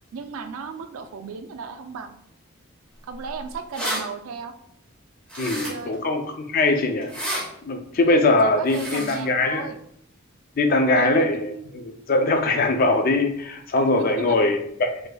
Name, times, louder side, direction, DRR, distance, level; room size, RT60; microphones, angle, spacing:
voice 1, 0.1-2.2 3.0-4.5 5.3-5.9 8.4-9.8 10.9-11.1 14.3-14.4, right 5 dB, 80° right, 6 dB, 0.4 m, -35 dB
sound 1, 3.3-3.4 3.5-4.0 5.3-5.9 7.0-7.4 8.6-9.2, equal, 5° left, 1.0 m, -30 dB
voice 2, 5.4-7.1 7.6-9.7 10.6-15.1, left 2 dB, 40° left, 5 dB, 0.4 m, -21 dB
3.3 x 3.2 x 2.2 m, 0.70 s
head